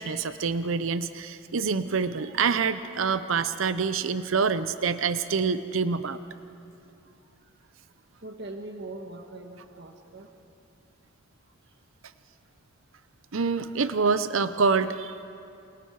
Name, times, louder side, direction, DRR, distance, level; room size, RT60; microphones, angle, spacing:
voice 1, 0.0-6.2 13.3-15.2, right 5 dB, 80° right, 12 dB, 0.7 m, -26 dB
voice 2, 7.2-7.5 8.2-10.3 12.5-12.6 13.7-13.8 14.5-14.7, right 2 dB, 55° right, 4 dB, 1.5 m, -42 dB
28.5 x 27.5 x 4.8 m, 2.6 s
head